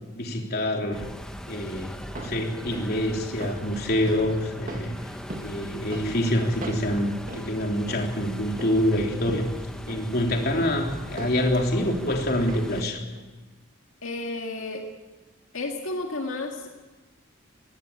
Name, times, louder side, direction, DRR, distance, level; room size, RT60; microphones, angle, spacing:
voice 1, 0.1-1.1 1.5-5.0 5.4-9.5 9.9-13.0, left 1 dB, 50° left, 1 dB, 3.4 m, -26 dB
sound 1, 0.9-12.8, equal, 5° left, 1.3 m, -40 dB
sound 2, 1.9-12.9 13.2-13.3, right 1 dB, 40° right, 2.2 m, -43 dB
voice 2, 14.0-14.9 15.5-16.7, left 2 dB, 80° left, 2 dB, 2.1 m, -32 dB
21.5 x 17.5 x 8.7 m, 1.2 s
head